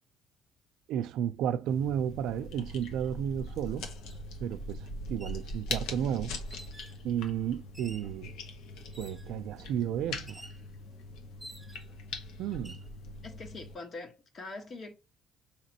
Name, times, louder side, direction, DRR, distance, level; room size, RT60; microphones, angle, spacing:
voice 1, 0.9-3.9 4.4-6.4 7.0-8.3 9.0-10.4 12.4-12.8, right 9 dB, 80° right, 0.4 m, -33 dB
sound 1, 1.7-13.7, left 2 dB, 80° left, 1.1 m, -42 dB
sound 2, 4.1-4.2 5.0-5.4 6.4-7.0 7.7-8.1 8.9-9.4 10.3-10.6 11.4-12.0 12.5-12.9, right 1 dB, 10° right, 0.4 m, -50 dB
voice 2, 13.2-14.9, left 3 dB, 40° left, 1.2 m, -43 dB
5.0 x 2.9 x 2.8 m
cardioid pair, 135°, 0 cm